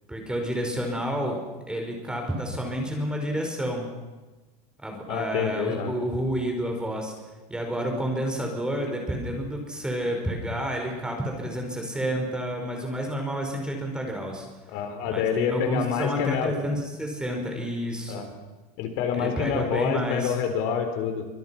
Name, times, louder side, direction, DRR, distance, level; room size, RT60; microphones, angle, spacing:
voice 1, 0.1-1.4 1.7-3.9 4.8-7.1 7.5-14.5 15.1-18.3 19.2-20.3, equal, 5° right, 2 dB, 5.1 m, -30 dB
voice 2, 5.1-5.9 14.7-16.6 18.1-18.3 18.8-21.3, left 7 dB, 55° left, 7 dB, 3.9 m, -27 dB
27.5 x 24.5 x 6.0 m, 1.2 s
supercardioid pair, 160°, 19 cm